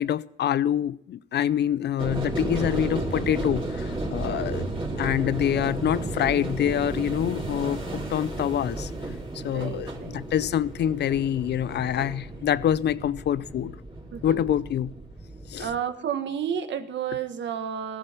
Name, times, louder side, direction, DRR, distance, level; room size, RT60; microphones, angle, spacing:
voice 1, 0.0-4.7 5.0-7.8 8.1-8.9 9.4-13.8 14.2-14.9 15.5-15.7, left 10 dB, 60° left, 0.5 m, -26 dB
sound 1, 2.0-15.8, right 2 dB, 25° right, 3.9 m, -33 dB
voice 2, 4.2-4.6 9.4-10.2 14.1-14.5 15.6-18.0, right 8 dB, 65° right, 1.5 m, -32 dB
14.5 x 12.0 x 5.7 m
cardioid pair, 90°, 20 cm